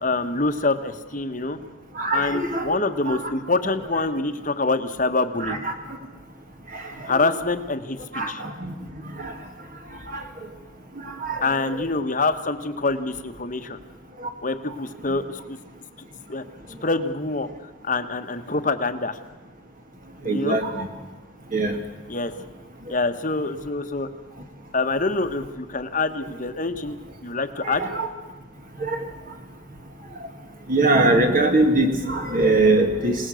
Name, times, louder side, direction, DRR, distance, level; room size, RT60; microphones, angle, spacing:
voice 1, 0.0-1.6 2.1-5.6 7.0-8.4 11.4-13.8 14.4-15.6 16.3-16.4 16.8-17.5 17.8-19.2 20.2-20.6 22.1-22.3 22.9-24.1 24.7-27.0 27.2-27.9, left 3 dB, 40° left, 8 dB, 1.3 m, -25 dB
voice 2, 2.0-2.8 3.1-3.2 5.4-5.7 8.1-8.7 9.2-9.3 10.1-10.2 11.2-11.4 20.3-20.9 21.5-21.7 27.6-28.1 28.8-29.0 30.7-33.2, right 2 dB, 40° right, 4 dB, 2.0 m, -21 dB
27.0 x 19.0 x 6.4 m, 1.2 s
head